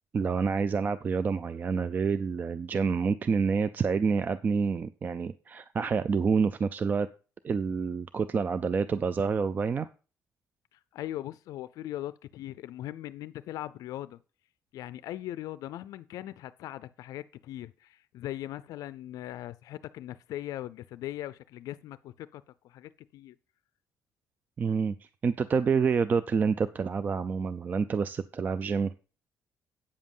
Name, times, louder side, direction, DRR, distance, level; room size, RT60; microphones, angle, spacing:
voice 1, 0.1-7.1 7.4-9.9 24.6-28.9, right 5 dB, 30° right, 0.4 m, -28 dB
voice 2, 10.7-14.2 14.7-23.4, left 13 dB, 80° left, 0.4 m, -40 dB
8.6 x 7.4 x 5.4 m
cardioid pair, 155°, 6 cm